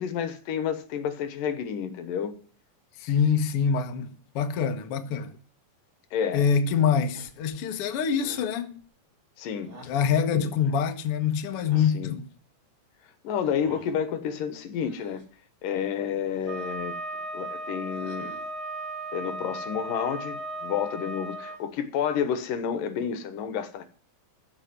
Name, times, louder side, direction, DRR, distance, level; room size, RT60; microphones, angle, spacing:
voice 1, 0.0-2.3 6.1-6.5 9.4-9.7 10.3-10.5 11.9-12.2 13.2-15.2 15.6-17.0 17.3-18.3 19.1-23.8, left 8 dB, 80° left, 2.9 m, -30 dB
voice 2, 3.0-4.1 4.4-5.3 6.3-8.8 9.8-12.3, left 7 dB, 55° left, 1.7 m, -25 dB
sound 1, 7.1-7.6 8.1-8.5 9.6-10.1 11.5-12.0 13.4-14.0 14.8-15.3 16.3-16.9 17.9-18.6, right 1 dB, 20° right, 3.2 m, -49 dB
Wind instrument woodwind instrument, 16.5-21.6, right 1 dB, 10° left, 1.8 m, -36 dB
14.5 x 5.3 x 9.5 m
omnidirectional pair, 3.9 m